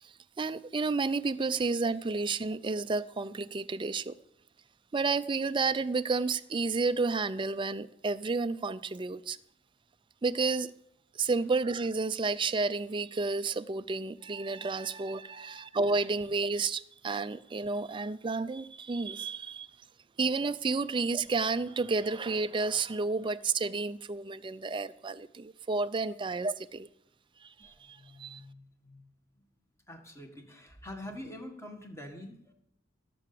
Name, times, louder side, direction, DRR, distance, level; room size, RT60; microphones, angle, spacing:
voice 1, 0.0-4.1 4.9-9.4 10.2-10.7 11.1-19.7 20.2-26.9 27.4-28.4, right 4 dB, 25° right, 0.4 m, -31 dB
voice 2, 27.6-29.1 29.9-32.5, left 1 dB, 15° left, 1.7 m, -46 dB
16.5 x 6.9 x 6.8 m
head